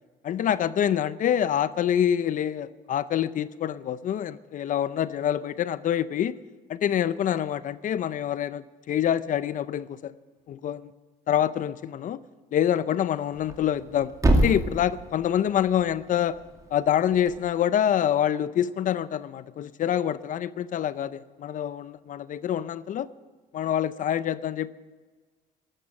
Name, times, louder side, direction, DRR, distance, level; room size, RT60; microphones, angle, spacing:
voice 1, 0.2-6.3 6.7-10.1 10.5-10.9 11.3-12.2 12.5-16.4 16.7-23.1 23.5-24.7, left 10 dB, 50° left, 16 dB, 0.6 m, -26 dB
Thump thud, 13.3-17.4, right 1 dB, 20° right, 2.2 m, -28 dB
13.0 x 12.0 x 7.5 m, 1.4 s
cardioid pair, 110°, 17 cm